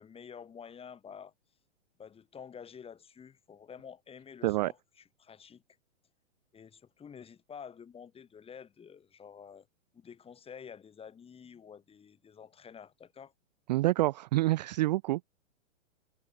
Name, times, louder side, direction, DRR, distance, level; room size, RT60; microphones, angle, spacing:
voice 1, 0.0-1.3 2.0-5.6 6.5-9.7 9.9-13.3, left 7 dB, 15° left, 4.3 m, -49 dB
voice 2, 13.7-15.3, right 18 dB, 35° right, 0.4 m, -27 dB
hypercardioid pair, 130°, 37 cm